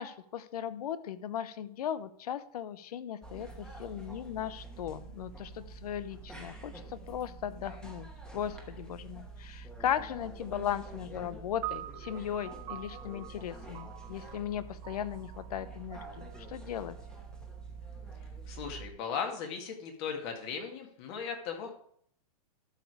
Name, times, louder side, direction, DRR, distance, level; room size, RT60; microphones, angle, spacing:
voice 1, 0.0-17.0, left 10 dB, 75° left, 14 dB, 0.8 m, -37 dB
sound 1, 3.2-18.9, right 3 dB, 5° left, 1.3 m, -47 dB
sound 2, 11.6-18.1, right 16 dB, 25° right, 0.4 m, -46 dB
voice 2, 18.5-21.7, left 6 dB, 45° left, 3 dB, 2.1 m, -37 dB
12.5 x 5.1 x 4.8 m, 0.64 s
hypercardioid pair, 145°, 20 cm